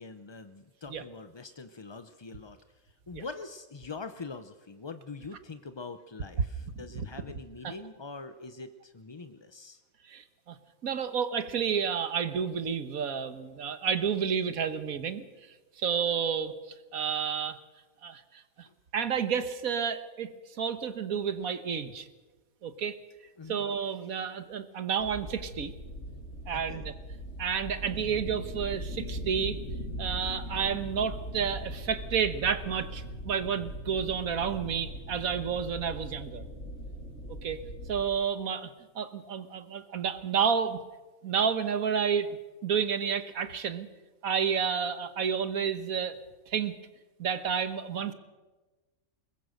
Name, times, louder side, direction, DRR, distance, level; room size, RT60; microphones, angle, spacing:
voice 1, 0.0-9.8 23.4-23.6 26.5-26.9, left 4 dB, 35° left, 10 dB, 0.4 m, -44 dB
voice 2, 10.1-10.6 10.8-15.2 15.8-16.5 16.9-17.6 18.0-18.2 18.6-18.7 18.9-20.3 20.6-22.1 22.6-23.0 23.5-25.7 26.5-26.9 27.4-29.6 30.0-36.4 37.4-37.6 37.9-40.8 41.2-43.9 44.2-46.7 47.2-48.1, right 7 dB, 75° right, 11 dB, 1.6 m, -30 dB
sound 1, 25.0-38.0, equal, 55° left, 3.5 m, -40 dB
22.0 x 20.0 x 6.5 m, 1.2 s
omnidirectional pair, 1.5 m